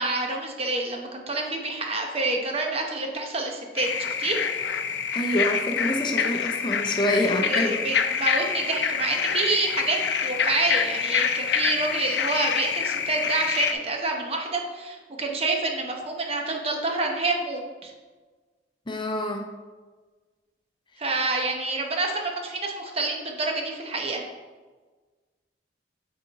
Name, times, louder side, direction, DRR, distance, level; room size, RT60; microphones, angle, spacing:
voice 1, 0.0-4.4 7.2-17.9 21.0-24.2, right 3 dB, 35° right, 2 dB, 0.9 m, -28 dB
sound 1, 3.8-13.7, left 7 dB, 75° left, 0.5 m, -26 dB
voice 2, 5.1-7.7 18.9-19.5, left 1 dB, 30° left, 3 dB, 0.7 m, -26 dB
9.4 x 3.8 x 4.1 m, 1.4 s
head